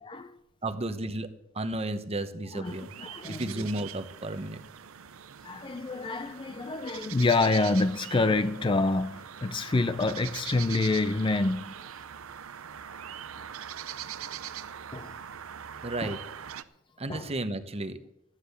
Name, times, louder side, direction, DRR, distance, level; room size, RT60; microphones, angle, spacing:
voice 1, 0.0-0.4 2.5-3.7 5.4-11.7 14.9-15.2 16.0-16.2 17.1-17.3, left 3 dB, 25° left, 0.4 m, -27 dB
voice 2, 0.6-1.3 1.5-2.9 3.3-4.6 15.8-16.2 17.0-18.0, right 2 dB, 30° right, 1.0 m, -33 dB
sound 1, 2.6-16.6, right 9 dB, 85° right, 0.6 m, -42 dB
14.0 x 9.9 x 6.9 m
head